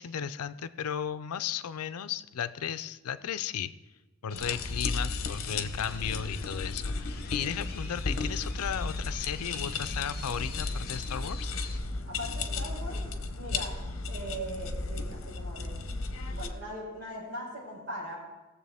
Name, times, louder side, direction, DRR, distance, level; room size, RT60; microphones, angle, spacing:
voice 1, 0.0-3.7 4.2-11.5, left 8 dB, 90° left, 13 dB, 0.5 m, -35 dB
voice 2, 4.2-4.5 7.4-7.5 12.1-13.1 13.3-13.8 14.1-15.8 16.3-18.2, right 1 dB, 55° right, -4 dB, 4.5 m, -40 dB
sound 1, 4.3-11.8, left 6 dB, 45° left, 1.1 m, -47 dB
sound 2, 4.4-16.5, left 3 dB, 65° left, 0.9 m, -34 dB
19.0 x 7.3 x 3.5 m, 1.1 s
head